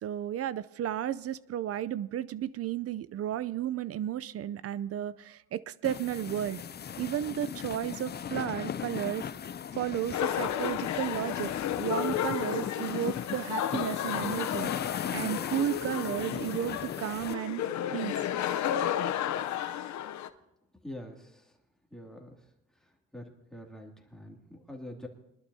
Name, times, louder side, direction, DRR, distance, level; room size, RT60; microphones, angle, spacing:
voice 1, 0.0-6.6 7.0-9.2 9.8-11.5 11.8-14.7 15.1-17.6 17.9-18.2, right 11 dB, 50° right, 19 dB, 0.5 m, -33 dB
sound 1, 5.8-17.3, left 8 dB, 35° left, 0.5 m, -38 dB
sound 2, 10.1-20.3, left 10 dB, 70° left, 0.7 m, -32 dB
voice 2, 20.8-21.5 21.9-22.4 23.1-25.1, left 1 dB, ahead, 0 dB, 2.4 m, -45 dB
23.5 x 11.5 x 2.7 m, 0.88 s
cardioid pair, 90°, 30 cm